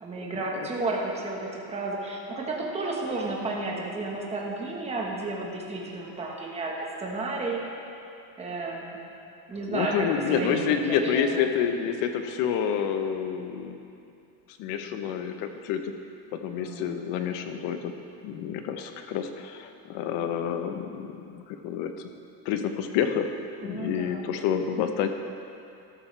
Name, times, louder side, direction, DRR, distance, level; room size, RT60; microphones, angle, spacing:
voice 1, 0.0-7.6 8.4-9.0 9.5-11.4 16.5-17.0 23.6-24.3, right 2 dB, 15° right, -2 dB, 1.4 m, -32 dB
voice 2, 9.7-13.8 14.6-15.8 16.3-17.9 18.2-21.9 22.4-23.3 23.6-25.1, left 8 dB, 75° left, 7 dB, 1.1 m, -28 dB
13.5 x 13.0 x 3.4 m, 2.6 s
cardioid pair, 170°, 44 cm